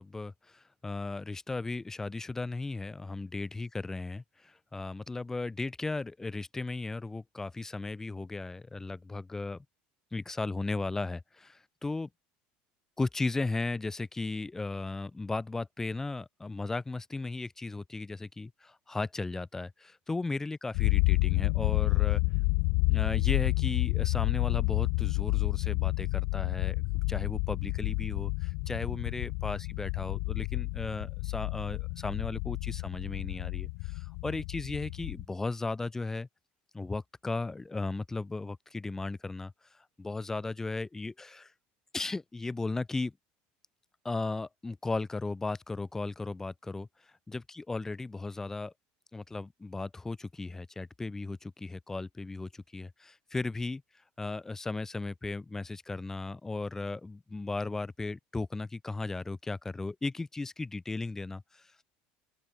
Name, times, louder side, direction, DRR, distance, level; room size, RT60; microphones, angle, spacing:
voice 1, 0.0-9.6 10.1-12.1 13.0-22.2 22.9-36.3 36.7-41.5 41.9-43.1 44.0-48.7 49.1-53.8 54.2-61.7, left 3 dB, 10° left, 1.3 m, -36 dB
sound 1, 20.7-35.2, left 40 dB or more, 70° left, 0.3 m, -29 dB
open air
supercardioid pair, 120°, 4 cm